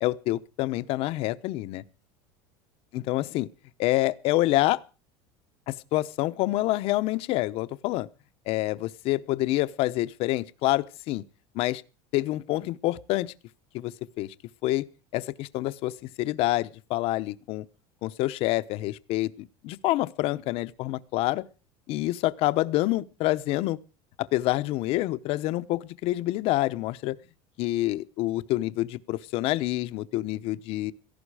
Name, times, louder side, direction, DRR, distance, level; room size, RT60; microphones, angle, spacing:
voice 1, 0.0-1.8 2.9-3.5 3.8-4.8 5.7-8.1 8.5-11.2 11.5-11.8 12.1-13.3 13.7-14.3 14.6-14.8 15.1-17.6 18.0-21.4 21.9-23.8 24.2-27.2 27.6-30.9, left 17 dB, 50° left, 0.9 m, -27 dB
17.0 x 15.0 x 4.9 m
cardioid pair, 160°, 13 cm